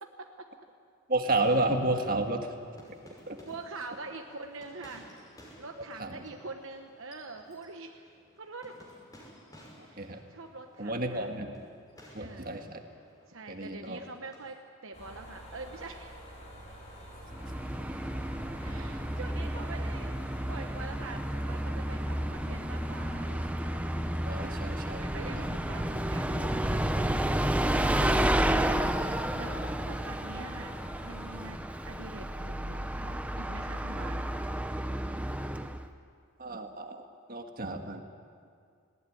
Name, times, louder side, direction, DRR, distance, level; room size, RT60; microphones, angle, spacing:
voice 1, 0.0-0.5 3.4-5.1 5.6-8.8 9.8-11.3 12.1-12.5 13.3-16.2 18.6-23.7 24.1-24.5 25.0-26.8 29.3-30.8 31.0-34.2, right 3 dB, 65° right, 4 dB, 1.1 m, -45 dB
voice 2, 1.1-2.5 3.3-3.4 6.0-6.2 10.0-10.2 10.8-11.7 12.1-12.8 13.5-14.0 24.2-25.0 25.4-25.5 27.9-28.3 28.9-29.3 36.4-37.0 37.3-38.0, right 2 dB, 40° right, 4 dB, 1.7 m, -31 dB
sound 1, 1.4-14.5, equal, 15° left, 5.7 m, -56 dB
sound 2, 14.9-31.5, equal, 35° left, 6.2 m, -48 dB
Bus, 17.3-35.9, right 1 dB, 5° right, 0.7 m, -31 dB
19.0 x 18.5 x 9.9 m, 2.2 s
head